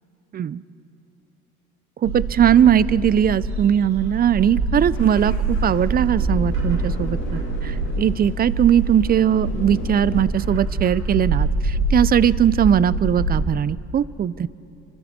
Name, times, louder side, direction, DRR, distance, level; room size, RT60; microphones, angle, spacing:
voice 1, 2.0-14.5, right 9 dB, 30° right, 19 dB, 0.5 m, -19 dB
Bird, 2.0-13.4, right 2 dB, 90° right, 4.7 m, -25 dB
sound 1, 4.9-10.2, left 4 dB, 60° left, 4.3 m, -38 dB
27.5 x 25.0 x 4.3 m, 2.7 s
supercardioid pair, 90°, 30 cm